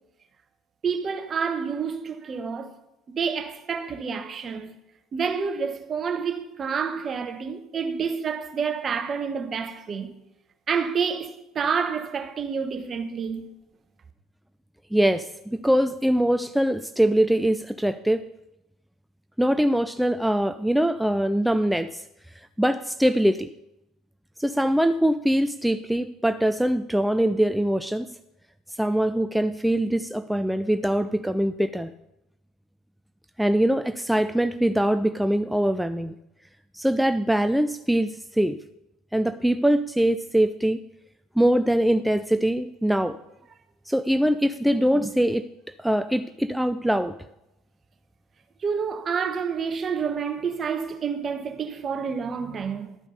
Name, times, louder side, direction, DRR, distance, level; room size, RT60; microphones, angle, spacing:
voice 1, 0.8-2.8 3.1-4.7 5.1-10.1 10.7-13.5 48.6-53.0, right 6 dB, 40° right, 1.0 m, -28 dB
voice 2, 14.9-18.2 19.4-22.0 22.4-23.5 24.4-28.1 28.7-31.9 33.4-36.2 36.7-38.6 39.1-40.8 41.4-43.2 43.9-45.5 45.8-47.1, right 1 dB, 5° right, 0.4 m, -23 dB
12.0 x 4.9 x 5.5 m
hypercardioid pair, 65°, 0 cm